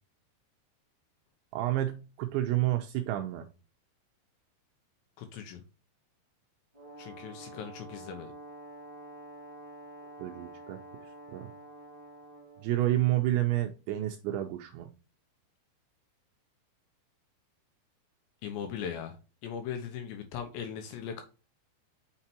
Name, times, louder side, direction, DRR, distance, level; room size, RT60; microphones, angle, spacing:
voice 1, 1.5-3.5 10.2-10.8 11.3-11.5 12.6-14.9, right 14 dB, 80° right, 5 dB, 2.8 m, -29 dB
voice 2, 5.2-5.6 7.0-8.3 18.4-19.2 19.4-21.2, left 8 dB, 75° left, 6 dB, 2.9 m, -39 dB
Brass instrument, 6.7-12.7, right 1 dB, 65° right, 0.3 m, -48 dB
6.6 x 5.8 x 2.9 m, 0.32 s
omnidirectional pair, 5.7 m